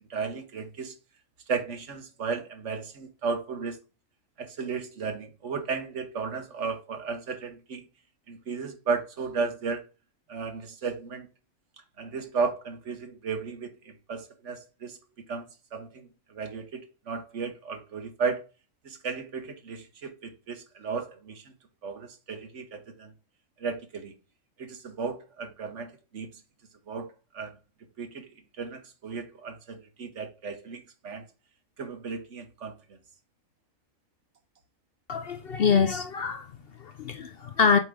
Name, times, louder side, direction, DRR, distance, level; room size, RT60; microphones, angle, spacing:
voice 1, 0.1-0.9 1.5-3.8 4.4-7.8 8.3-9.8 10.3-11.3 12.0-15.0 15.3-15.5 15.7-18.4 18.8-21.5 21.8-23.1 23.6-24.1 24.6-26.3 26.9-27.5 28.0-28.3 28.6-31.2 31.8-32.7, right 5 dB, 65° right, 1.4 m, -34 dB
voice 2, 35.1-37.8, left 6 dB, 55° left, 0.7 m, -25 dB
7.6 x 3.7 x 4.8 m
omnidirectional pair, 1.4 m